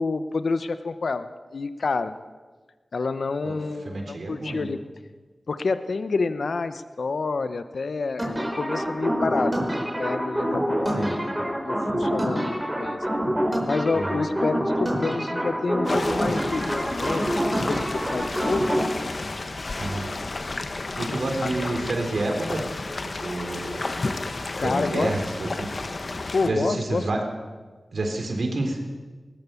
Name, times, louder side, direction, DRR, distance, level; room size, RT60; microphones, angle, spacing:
voice 1, 0.0-2.2 2.9-4.8 5.5-9.5 9.9-11.1 11.6-13.0 13.7-17.2 17.5-18.9 20.2-20.4 21.1-21.5 24.6-25.1 26.3-27.1, left 4 dB, 85° left, 11 dB, 0.9 m, -28 dB
voice 2, 3.8-4.7 11.0-11.2 13.9-14.2 19.8-20.1 21.0-22.7 23.2-23.8 24.6-25.7 26.4-27.2 27.9-28.8, right 2 dB, 85° right, 3 dB, 4.0 m, -28 dB
sound 1, 8.2-18.8, equal, 15° right, 5.0 m, -26 dB
sound 2, 15.8-26.5, left 3 dB, 60° left, 1.4 m, -32 dB
20.0 x 19.5 x 7.1 m, 1.4 s
wide cardioid pair, 60°, 0 cm